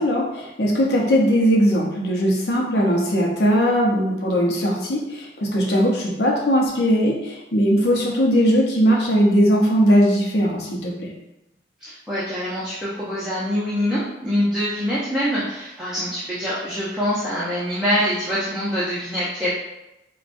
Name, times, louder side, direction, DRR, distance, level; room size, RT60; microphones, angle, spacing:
voice 1, 0.0-11.1, equal, 75° left, -2 dB, 0.7 m, -19 dB
voice 2, 11.8-19.5, equal, 5° right, -11 dB, 0.6 m, -24 dB
4.7 x 2.2 x 2.5 m, 0.92 s
head